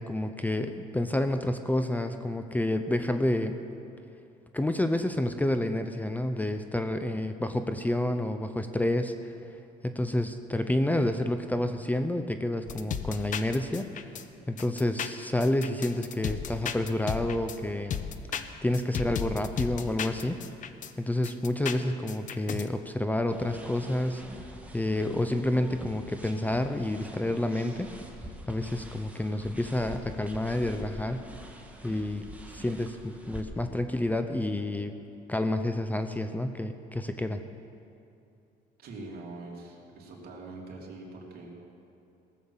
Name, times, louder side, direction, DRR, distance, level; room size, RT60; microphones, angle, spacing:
voice 1, 0.0-3.6 4.5-9.4 9.8-13.9 14.5-18.0 18.3-20.4 21.0-24.2 24.7-27.9 28.5-31.3 31.8-32.2 32.5-34.9 35.3-37.4, left 1 dB, 10° left, 8 dB, 0.6 m, -29 dB
sound 1, 12.7-14.2 14.6-17.6 17.9-20.9 21.2-22.7, left 8 dB, 50° left, 0.7 m, -34 dB
sound 2, 23.3-33.4, equal, 10° right, 1.6 m, -45 dB
voice 2, 38.8-41.6, right 2 dB, 65° right, -2 dB, 3.0 m, -43 dB
18.0 x 7.2 x 7.2 m, 2.6 s
cardioid pair, 110°, 17 cm